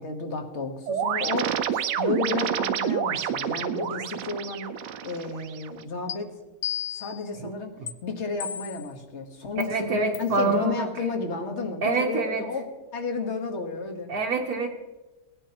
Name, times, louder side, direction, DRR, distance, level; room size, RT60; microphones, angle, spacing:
voice 1, 0.0-4.7 5.0-6.3 6.9-7.7 8.0-12.6 12.9-14.1, left 4 dB, 45° left, 3 dB, 1.5 m, -32 dB
sound 1, 0.9-5.8, right 8 dB, 80° right, 1.3 m, -29 dB
sound 2, 6.1-6.2 6.6-7.2 7.9-8.0 8.4-8.9 9.6-9.7 10.1-10.4, left 8 dB, 65° left, 0.8 m, -33 dB
voice 2, 9.7-10.9 11.8-12.4 14.1-14.7, right 3 dB, 65° right, 2 dB, 1.3 m, -26 dB
18.0 x 9.8 x 2.9 m, 1.1 s
omnidirectional pair, 1.9 m